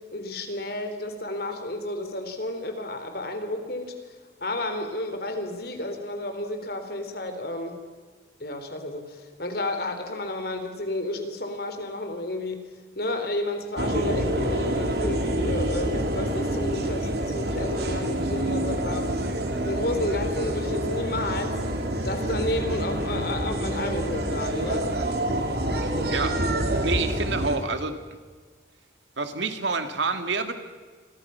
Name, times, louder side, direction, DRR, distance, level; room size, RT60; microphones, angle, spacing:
voice 1, 0.1-4.1 4.4-7.8 8.4-12.6 13.0-19.1 19.6-21.6 22.0-24.9, left 1 dB, 55° left, 6 dB, 3.7 m, -31 dB
sound 1, 13.8-27.6, right 1 dB, 60° right, 3.1 m, -27 dB
voice 2, 26.8-28.0 29.2-30.5, right 4 dB, 75° right, 8 dB, 2.4 m, -28 dB
28.5 x 23.5 x 5.8 m, 1.5 s
head